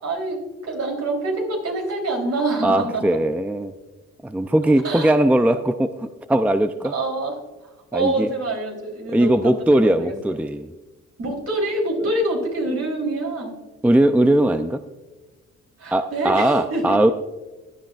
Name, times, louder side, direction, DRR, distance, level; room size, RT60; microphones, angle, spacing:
voice 1, 0.0-3.0 4.8-5.1 6.8-7.4 7.9-10.1 11.2-13.6 15.8-17.0, right 2 dB, 55° right, 1 dB, 3.5 m, -26 dB
voice 2, 2.6-3.7 4.2-6.9 7.9-8.3 9.1-10.7 13.8-14.8 15.9-17.1, right 1 dB, 5° right, 9 dB, 0.4 m, -19 dB
16.0 x 11.5 x 2.4 m, 1.2 s
cardioid pair, 90°, 30 cm